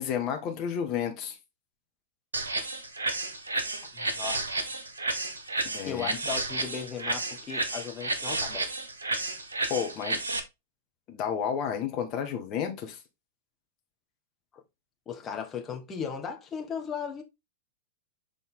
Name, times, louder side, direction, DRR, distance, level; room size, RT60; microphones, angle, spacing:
voice 1, 0.0-1.3 5.6-6.2 9.7-10.2 11.1-13.0, left 8 dB, 40° left, 1.5 m, -31 dB
sound 1, 2.3-10.4, right 2 dB, 75° right, 1.0 m, -31 dB
voice 2, 3.9-4.5 5.8-8.7 15.1-17.2, left 7 dB, 25° left, 1.4 m, -36 dB
6.7 x 3.8 x 3.7 m
figure-of-eight pair, 95°, 0 cm